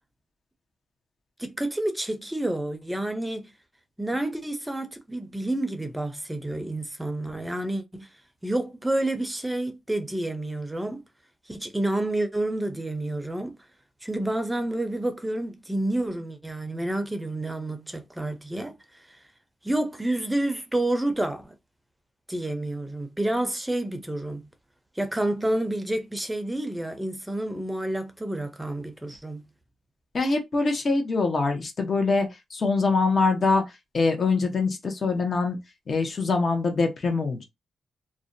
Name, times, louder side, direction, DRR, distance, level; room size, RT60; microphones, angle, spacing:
voice 1, 1.4-3.5 4.0-8.1 8.4-11.0 11.5-13.6 14.0-18.7 19.1-19.2 19.6-21.5 22.3-24.5 25.0-29.4, right 1 dB, 10° right, 0.5 m, -29 dB
voice 2, 30.1-33.6 33.9-35.6 35.9-37.4, left 3 dB, 50° left, 0.8 m, -24 dB
2.5 x 2.1 x 2.6 m
cardioid pair, 60°, 0 cm